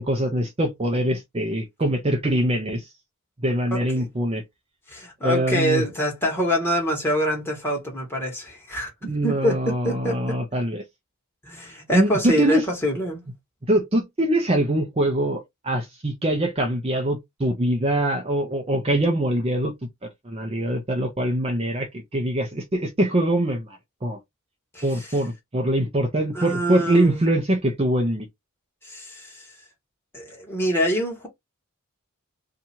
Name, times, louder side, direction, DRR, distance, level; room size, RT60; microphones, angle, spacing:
voice 1, 0.0-2.9 3.4-4.4 5.2-5.8 9.1-10.8 11.9-12.6 13.7-19.7 20.0-24.2 24.8-28.3, right 1 dB, 25° right, 0.6 m, -23 dB
voice 2, 3.7-4.1 4.9-8.9 9.2-9.6 9.8-10.4 11.4-13.2 24.7-25.2 26.3-27.2 28.8-29.5 30.1-31.3, equal, 10° left, 1.5 m, -26 dB
2.8 x 2.5 x 4.2 m
head